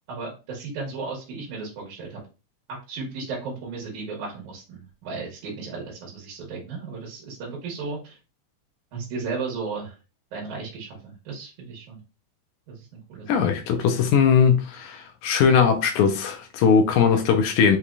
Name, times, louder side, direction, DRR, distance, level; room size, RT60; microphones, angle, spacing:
voice 1, 0.1-2.2 2.9-8.2 8.9-9.9 10.3-12.0 12.7-13.4, right 4 dB, 75° right, 2.8 m, -35 dB
voice 2, 13.3-17.8, left 6 dB, 85° left, 2.1 m, -20 dB
6.7 x 3.0 x 2.4 m
omnidirectional pair, 3.5 m